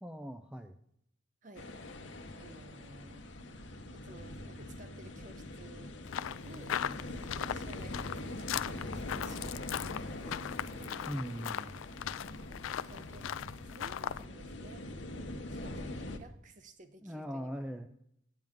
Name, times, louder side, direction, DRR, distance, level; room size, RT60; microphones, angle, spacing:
voice 1, 0.0-0.8 11.1-11.7 17.0-17.9, equal, 5° right, 7 dB, 0.4 m, -40 dB
voice 2, 1.4-1.7 2.4-3.3 3.9-6.2 6.4-6.8 7.3-11.1 12.3-14.9 15.1-17.5, right 2 dB, 40° right, 9 dB, 0.8 m, -56 dB
sound 1, 1.5-16.2, left 1 dB, 65° left, 0.9 m, -43 dB
sound 2, 6.1-14.2, left 10 dB, 85° left, 0.3 m, -39 dB
9.1 x 9.0 x 3.6 m, 0.73 s
head